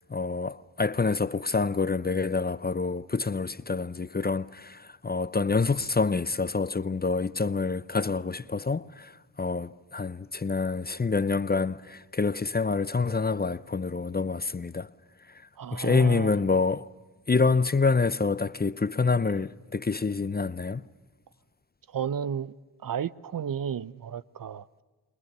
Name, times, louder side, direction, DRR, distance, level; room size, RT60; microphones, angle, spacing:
voice 1, 0.0-9.1 9.4-14.9 15.7-16.9 17.3-20.8, left 4 dB, 20° left, 0.7 m, -27 dB
voice 2, 15.6-16.4 21.9-22.5 22.8-24.8, right 8 dB, 50° right, 0.9 m, -33 dB
28.0 x 21.5 x 6.7 m
cardioid pair, 55°, 42 cm